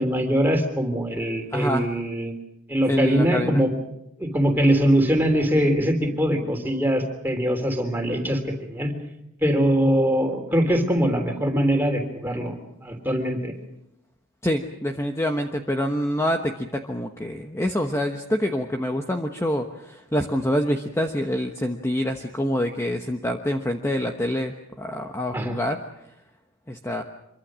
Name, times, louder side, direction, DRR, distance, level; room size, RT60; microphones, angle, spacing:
voice 1, 0.0-2.3 2.7-3.7 4.2-8.9 9.4-12.5 12.8-13.5 25.3-25.6, equal, 10° right, 3 dB, 3.5 m, -22 dB
voice 2, 1.5-1.9 2.9-3.6 14.4-25.8 26.7-27.0, equal, 10° left, 4 dB, 1.1 m, -26 dB
26.0 x 23.5 x 6.4 m, 0.87 s
head